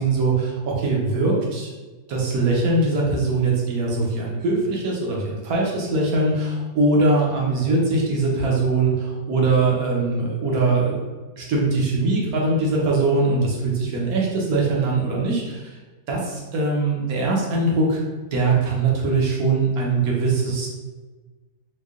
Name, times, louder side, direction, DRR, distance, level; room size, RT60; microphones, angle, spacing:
voice 1, 0.0-1.7 2.1-11.0 11.4-15.7 16.1-18.0 18.3-20.7, right 3 dB, 65° right, -3 dB, 1.2 m, -21 dB
4.5 x 2.3 x 2.4 m, 1.3 s
omnidirectional pair, 1.8 m